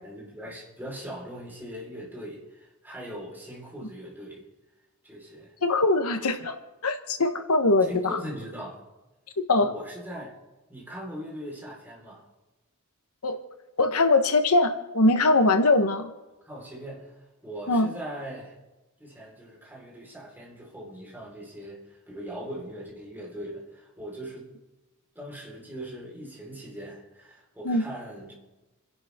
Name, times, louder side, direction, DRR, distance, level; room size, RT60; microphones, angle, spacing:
voice 1, 0.0-4.4 5.0-5.5 7.8-8.8 9.6-10.3 10.7-12.2 16.5-17.1 17.4-18.5 19.0-24.5 25.1-28.3, equal, 10° right, -4 dB, 4.3 m, -40 dB
voice 2, 5.6-6.6 6.8-8.2 9.5-9.7 13.2-13.4 13.8-16.1 17.7-17.9 27.6-27.8, left 2 dB, 75° left, 7 dB, 1.1 m, -22 dB
29.0 x 11.0 x 3.6 m, 1.1 s
head